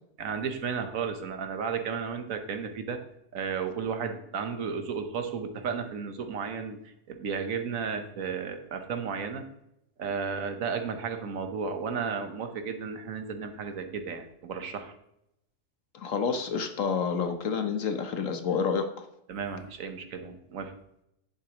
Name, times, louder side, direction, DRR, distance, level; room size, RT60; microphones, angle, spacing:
voice 1, 0.2-3.0 3.3-9.5 10.0-14.9 19.3-20.7, right 6 dB, 75° right, 7 dB, 1.5 m, -33 dB
voice 2, 15.9-19.1, left 6 dB, 70° left, 7 dB, 1.3 m, -29 dB
10.5 x 8.2 x 3.0 m, 0.80 s
omnidirectional pair, 1.4 m